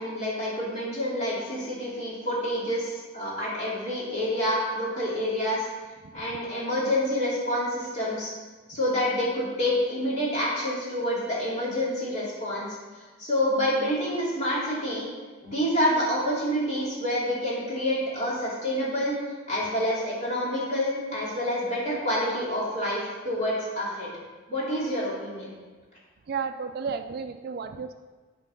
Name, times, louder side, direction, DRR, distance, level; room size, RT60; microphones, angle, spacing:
voice 1, 0.0-5.7 6.1-8.3 8.7-12.8 13.2-15.1 15.4-19.1 19.5-24.1 24.5-25.5, equal, 35° left, -7 dB, 2.5 m, -28 dB
voice 2, 26.3-27.9, right 5 dB, 50° right, 8 dB, 0.3 m, -32 dB
10.5 x 4.5 x 4.1 m, 1.3 s
head